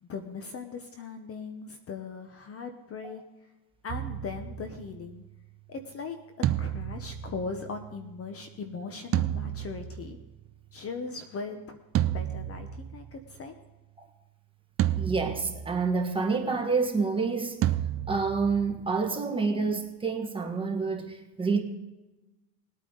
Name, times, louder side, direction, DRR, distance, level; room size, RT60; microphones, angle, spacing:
voice 1, 0.0-3.2 3.8-5.2 5.7-6.2 6.6-10.2 10.7-11.8 12.1-13.6, left 4 dB, 30° left, 0.9 m, -39 dB
sound 1, 3.9-5.2 6.4-8.1 9.1-10.5 11.9-13.3 14.8-16.0 17.6-19.0, right 12 dB, 35° right, 0.5 m, -31 dB
voice 2, 14.9-17.6 18.1-21.6, right 4 dB, 10° right, 1.6 m, -28 dB
20.0 x 8.9 x 3.9 m
cardioid pair, 130°, 44 cm